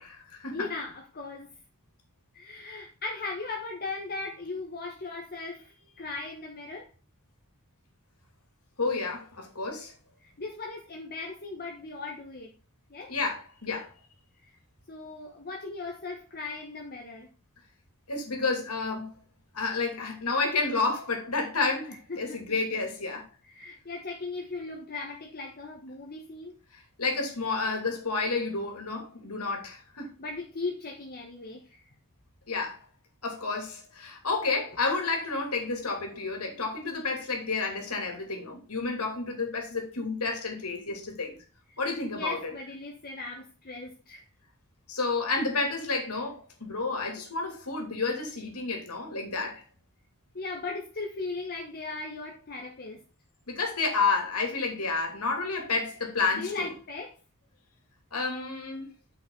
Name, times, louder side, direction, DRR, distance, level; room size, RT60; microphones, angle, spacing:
voice 1, 0.0-0.7 8.8-9.9 13.1-13.9 18.1-19.2 19.5-23.3 26.7-30.1 32.5-32.8 33.2-41.4 41.8-42.5 44.9-49.6 53.5-56.7 58.1-58.9, left 3 dB, 80° left, 2.8 m, -30 dB
voice 2, 0.5-1.5 2.3-6.9 10.2-12.5 12.9-13.1 14.4-14.6 14.9-17.3 22.1-22.6 23.5-26.6 30.2-31.8 42.1-44.2 50.3-53.0 56.3-57.2, left 3 dB, 45° left, 1.3 m, -38 dB
8.9 x 6.0 x 3.9 m
head